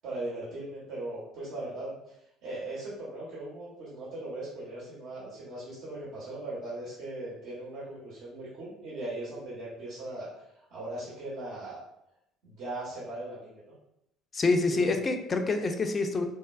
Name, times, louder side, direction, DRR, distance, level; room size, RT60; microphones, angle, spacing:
voice 1, 0.0-2.1 2.4-10.3 10.7-11.8 12.4-13.7 14.7-14.9, right 2 dB, 60° right, -8 dB, 0.9 m, -39 dB
voice 2, 14.3-16.2, left 3 dB, 30° left, 6 dB, 0.3 m, -26 dB
3.1 x 2.1 x 2.3 m, 0.81 s
figure-of-eight pair, 55°, 0 cm